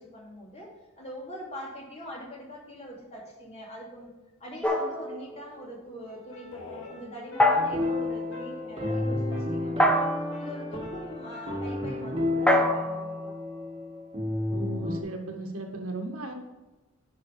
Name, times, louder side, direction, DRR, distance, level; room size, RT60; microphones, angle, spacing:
voice 1, 0.0-4.1 4.4-13.3, equal, 30° left, -3 dB, 3.1 m, -43 dB
sound 1, 4.6-5.7 7.4-8.0 9.8-10.4 12.5-14.2, left 1 dB, 5° left, 1.1 m, -26 dB
sound 2, 6.0-12.1, left 3 dB, 65° left, 2.7 m, -44 dB
sound 3, 7.5-15.0, left 2 dB, 25° right, 1.9 m, -32 dB
voice 2, 14.5-16.3, right 2 dB, 75° right, 3 dB, 1.8 m, -36 dB
10.0 x 5.8 x 5.0 m, 1.1 s
head